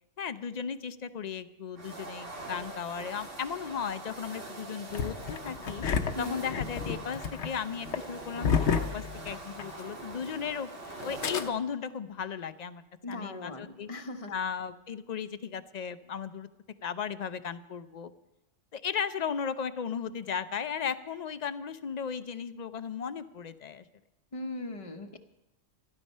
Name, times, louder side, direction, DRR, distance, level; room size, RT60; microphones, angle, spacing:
voice 1, 0.2-5.8 6.2-10.7 11.0-12.8 13.1-13.9 14.3-16.5 16.8-18.1 18.7-23.8, left 7 dB, 50° left, 13 dB, 0.6 m, -36 dB
sound 1, 1.7-11.5, right 2 dB, 85° right, 2.5 m, -43 dB
Engine starting, 4.9-9.8 10.1-10.2 11.0-11.4, left 6 dB, 75° left, 1.1 m, -31 dB
voice 2, 13.0-14.3 24.3-25.2, left 2 dB, 30° left, 6 dB, 0.9 m, -39 dB
13.0 x 12.5 x 5.5 m, 0.94 s
omnidirectional pair, 1.2 m